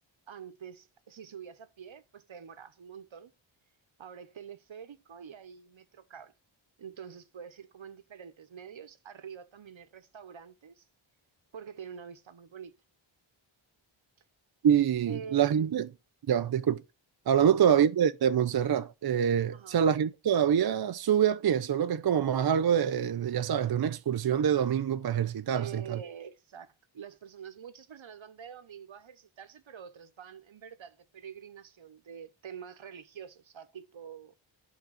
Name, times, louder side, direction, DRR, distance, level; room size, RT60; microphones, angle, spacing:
voice 1, 0.3-3.3 4.0-6.3 6.8-10.8 11.5-12.7 15.1-15.7 17.4-17.8 19.5-19.8 25.5-34.3, right 7 dB, 70° right, 1.0 m, -46 dB
voice 2, 14.6-15.9 16.3-16.8 17.3-26.0, right 8 dB, 50° right, 0.5 m, -25 dB
10.5 x 3.9 x 6.3 m
wide cardioid pair, 70°, 49 cm